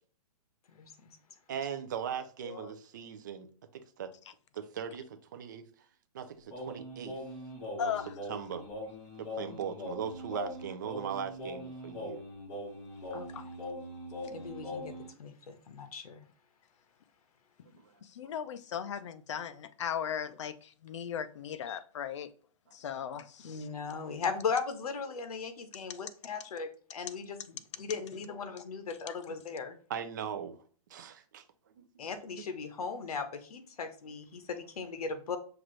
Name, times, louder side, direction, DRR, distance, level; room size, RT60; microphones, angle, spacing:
voice 1, 0.7-1.2 13.1-13.3 14.3-14.9 15.2-16.2 23.4-29.8 32.0-35.4, left 5 dB, 80° left, 1.0 m, -38 dB
voice 2, 1.5-3.5 3.7-4.1 4.5-5.6 6.1-7.1 7.8-7.9 8.3-8.6 9.2-12.2 18.2-18.3 29.9-30.6 30.9-31.4 31.8-32.1, right 8 dB, 30° right, 0.4 m, -39 dB
Singing, 6.5-15.1, left 1 dB, 35° left, 2.2 m, -41 dB
voice 3, 7.8-8.1 13.3-13.4 18.0-22.3 22.7-23.7, left 8 dB, 50° left, 0.4 m, -37 dB
5.8 x 2.5 x 3.1 m
hypercardioid pair, 175°, 19 cm